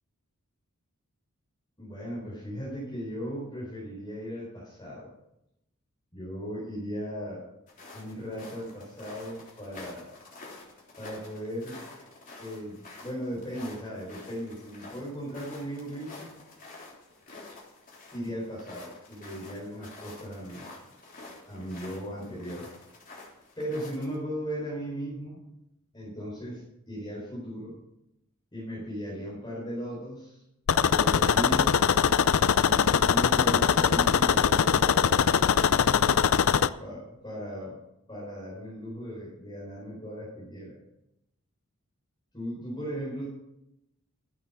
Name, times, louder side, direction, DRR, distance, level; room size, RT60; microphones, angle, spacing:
voice 1, 1.8-5.1 6.1-7.4 7.9-10.1 10.9-11.8 12.4-16.4 18.1-20.7 21.2-22.7 23.6-25.4 25.9-27.7 28.5-30.4 30.8-31.9 32.6-36.0 36.8-37.8 38.1-40.8 42.3-43.3, equal, 20° left, -7 dB, 4.5 m, -37 dB
sound 1, 7.7-24.2, left 2 dB, 40° left, 3.5 m, -48 dB
sound 2, 30.7-36.7, left 7 dB, 65° left, 0.5 m, -22 dB
13.0 x 8.9 x 5.7 m, 0.84 s
head